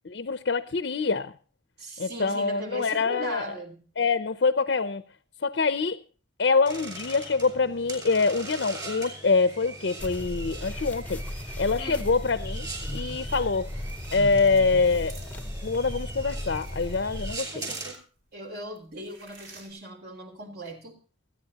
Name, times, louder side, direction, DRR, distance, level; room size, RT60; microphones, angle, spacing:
voice 1, 0.0-1.3 2.0-3.5 4.0-5.0 5.4-6.0 6.4-11.2 11.6-13.7 14.1-17.7, left 4 dB, 60° left, 0.6 m, -25 dB
voice 2, 1.8-3.8 11.8-12.1 17.5-18.0 18.3-21.0, equal, 55° right, 3.5 m, -39 dB
sound 1, 6.6-17.9, right 2 dB, 20° right, 5.1 m, -41 dB
sound 2, 10.0-17.4, left 1 dB, 10° left, 0.8 m, -36 dB
sound 3, 14.0-18.2 18.6-19.7, right 3 dB, 80° right, 4.3 m, -52 dB
28.5 x 9.5 x 2.9 m
head